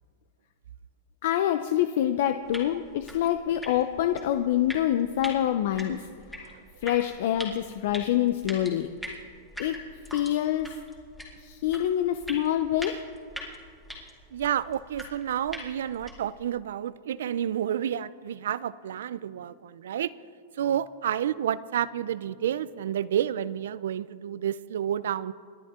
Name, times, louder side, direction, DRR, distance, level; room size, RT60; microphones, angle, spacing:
voice 1, 1.2-6.1 6.4-6.5 6.8-8.9 9.6-9.8 10.1-10.8 11.4-13.0, left 11 dB, 65° left, 8 dB, 0.7 m, -26 dB
sound 1, 2.4-16.4, left 1 dB, 5° left, 2.3 m, -43 dB
voice 2, 14.3-20.1 20.6-25.3, right 10 dB, 80° right, 18 dB, 0.5 m, -30 dB
29.0 x 10.5 x 3.7 m, 2.1 s
supercardioid pair, 145°, 0 cm